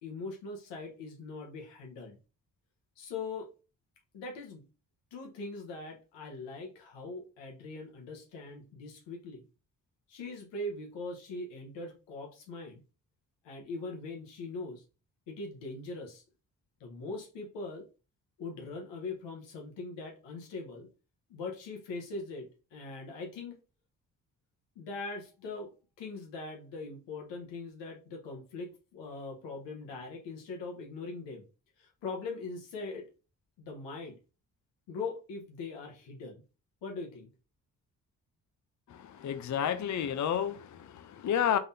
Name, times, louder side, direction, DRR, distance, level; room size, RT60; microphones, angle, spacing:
voice 1, 0.0-2.2 3.0-3.5 4.1-4.6 5.1-9.5 10.1-12.8 13.4-14.8 15.3-16.2 16.8-17.9 18.4-20.9 21.3-23.6 24.7-25.7 26.0-31.4 31.8-33.1 33.6-34.2 34.9-36.4 36.8-37.3 39.2-39.3, left 3 dB, 90° left, 1.1 m, -41 dB
voice 2, 38.9-41.6, left 9 dB, 45° left, 0.5 m, -31 dB
3.6 x 3.6 x 2.7 m
supercardioid pair, 45°, 42 cm